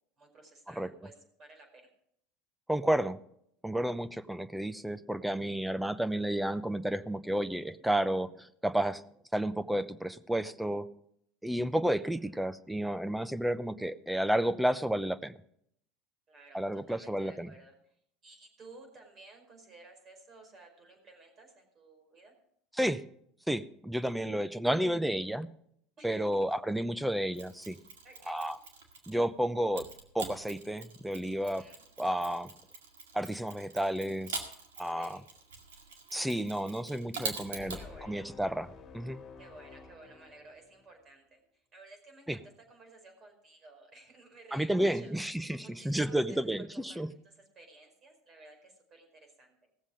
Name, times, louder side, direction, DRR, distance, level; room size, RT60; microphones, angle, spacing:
voice 1, 0.2-1.9 12.2-12.3 16.3-17.9 18.2-22.3 26.0-26.6 27.6-28.5 31.4-31.8 34.9-35.2 37.8-38.3 39.4-42.4 42.7-46.4 46.7-49.5, right 2 dB, 40° right, 3 dB, 5.0 m, -55 dB
voice 2, 2.7-3.2 3.6-9.0 9.3-10.9 11.4-15.3 16.5-17.5 22.8-23.0 23.5-25.5 26.0-27.8 28.3-28.6 29.1-29.9 30.1-31.6 32.0-32.5 33.1-34.4 34.8-35.2 36.1-37.8 38.1-39.2 42.3-42.4 44.5-47.1, right 1 dB, 5° right, 14 dB, 0.7 m, -31 dB
Mechanisms, 27.3-29.2 29.7-37.8, right 4 dB, 90° right, 2.0 m, -44 dB
sound 1, 37.5-41.0, left 5 dB, 40° left, 1.8 m, -51 dB
18.0 x 7.3 x 5.0 m, 0.70 s
hypercardioid pair, 90°, 0 cm